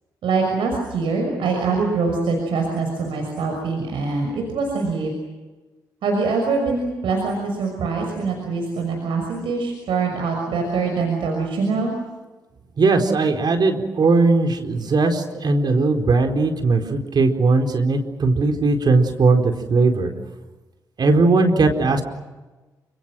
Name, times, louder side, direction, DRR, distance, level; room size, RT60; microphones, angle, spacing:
voice 1, 0.2-5.1 6.0-11.9, right 4 dB, 70° right, 2 dB, 6.1 m, -23 dB
voice 2, 12.8-20.1 21.0-22.0, right 3 dB, 50° right, 5 dB, 4.4 m, -18 dB
29.5 x 27.5 x 6.3 m, 1.2 s
hypercardioid pair, 40°, 9 cm